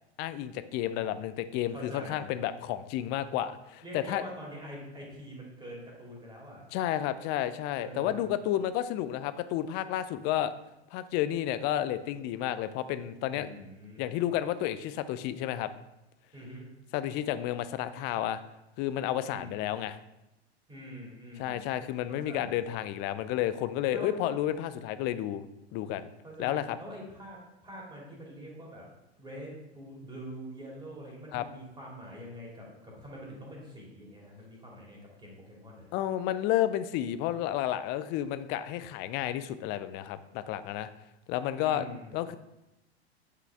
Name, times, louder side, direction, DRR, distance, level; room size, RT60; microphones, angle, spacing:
voice 1, 0.2-4.2 6.7-10.5 10.9-13.5 14.0-15.7 16.9-18.4 18.8-20.0 21.4-25.4 25.7-26.1 26.4-26.8 31.3-31.5 35.9-40.9 41.3-41.9 42.1-42.4, left 12 dB, 30° left, 13 dB, 0.4 m, -31 dB
voice 2, 1.7-2.2 3.8-6.6 7.8-8.3 13.3-14.0 16.3-16.7 19.2-19.7 20.7-21.6 22.1-22.6 23.9-24.3 26.2-28.8 29.2-35.9 41.6-42.1, equal, 15° right, -3 dB, 2.5 m, -44 dB
7.8 x 5.7 x 3.5 m, 0.92 s
figure-of-eight pair, 90°, 32 cm